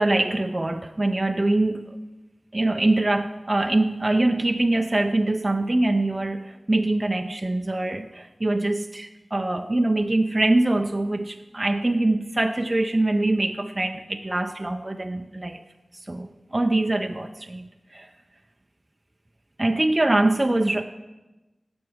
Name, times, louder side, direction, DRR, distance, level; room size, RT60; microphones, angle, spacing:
voice 1, 0.0-2.0 2.5-15.6 16.1-18.1 19.6-20.8, right 2 dB, 30° right, 5 dB, 0.6 m, -23 dB
16.5 x 6.2 x 6.3 m, 1.1 s
cardioid pair, 45°, 0 cm